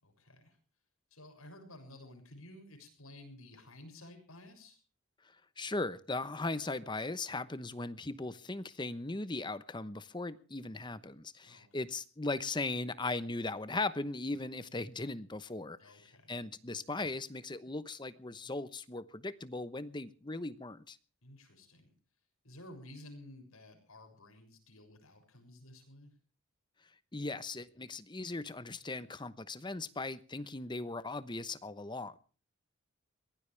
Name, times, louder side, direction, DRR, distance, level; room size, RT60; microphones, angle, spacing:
voice 1, 0.0-0.6 1.1-4.8 11.4-11.8 15.8-16.4 21.2-21.9 22.4-26.1, left 1 dB, 80° left, 5 dB, 6.9 m, -53 dB
voice 2, 5.6-21.0 27.1-32.2, left 2 dB, 20° left, 14 dB, 0.9 m, -38 dB
22.5 x 17.0 x 3.4 m, 0.39 s
head